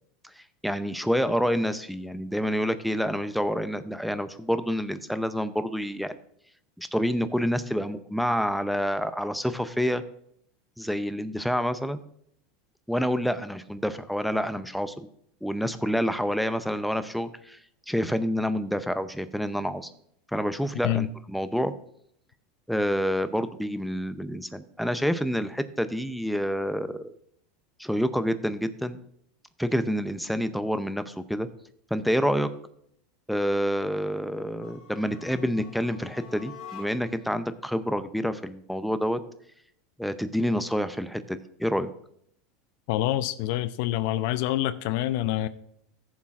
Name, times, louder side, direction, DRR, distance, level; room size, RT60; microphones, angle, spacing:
voice 1, 0.2-6.2 6.8-10.0 10.8-12.0 12.9-15.1 15.4-17.6 17.9-19.9 20.3-21.7 22.7-27.2 27.8-29.0 29.6-31.5 31.9-32.5 33.3-39.2 40.0-41.9, equal, ahead, 0.6 m, -28 dB
sound 1, 34.5-37.3, left 7 dB, 50° left, 2.5 m, -46 dB
voice 2, 42.9-45.5, left 14 dB, 65° left, 0.5 m, -26 dB
14.0 x 7.3 x 2.5 m
supercardioid pair, 105°, 0 cm